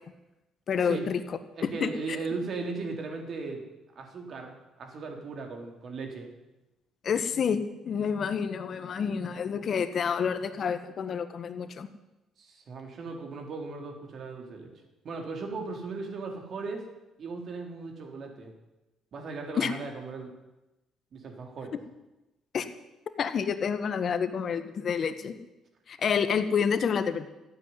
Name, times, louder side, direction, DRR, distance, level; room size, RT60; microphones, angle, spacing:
voice 1, 0.7-1.2 1.6-1.9 7.0-11.9 19.6-19.7 22.5-22.7 23.2-25.4 25.9-27.3, left 7 dB, 55° left, 10 dB, 1.5 m, -28 dB
voice 2, 1.6-3.6 4.0-6.3 12.4-14.7 15.0-16.8 17.2-18.5 19.1-20.3 21.1-21.7, right 4 dB, 55° right, 3 dB, 3.8 m, -37 dB
14.5 x 9.7 x 9.8 m, 1.0 s
supercardioid pair, 75°, 0 cm